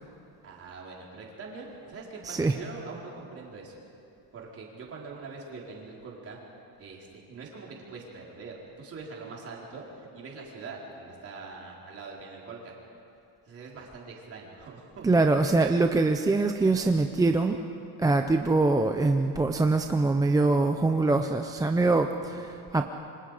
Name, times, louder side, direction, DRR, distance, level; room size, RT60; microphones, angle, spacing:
voice 1, 0.4-3.7 4.3-6.4 6.8-12.7 13.5-15.1, right 4 dB, 35° right, -3 dB, 4.4 m, -43 dB
voice 2, 15.0-17.6 18.0-22.9, right 3 dB, 10° right, 5 dB, 0.5 m, -23 dB
27.5 x 25.0 x 5.0 m, 2.8 s
cardioid pair, 170°, 38 cm